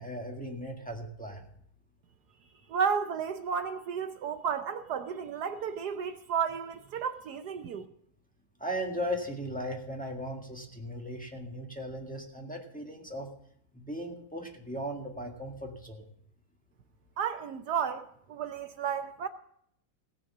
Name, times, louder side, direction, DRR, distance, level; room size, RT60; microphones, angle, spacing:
voice 1, 0.0-1.5 8.6-13.3 13.7-16.0, equal, 5° left, 1.4 m, -37 dB
voice 2, 2.7-7.9 17.2-19.3, right 7 dB, 70° right, 1.0 m, -32 dB
17.0 x 6.3 x 7.1 m
omnidirectional pair, 2.3 m